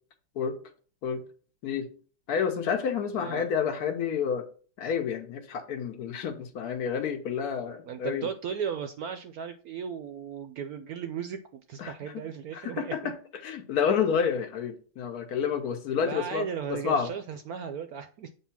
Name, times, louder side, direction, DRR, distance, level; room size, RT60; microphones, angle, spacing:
voice 1, 2.3-4.4 4.8-8.3 11.8-11.9 12.5-13.2 13.4-17.1, left 7 dB, 60° left, 1.3 m, -29 dB
voice 2, 3.2-3.5 7.9-13.1 16.0-18.3, right 7 dB, 75° right, 0.8 m, -36 dB
7.6 x 2.8 x 5.7 m
omnidirectional pair, 2.0 m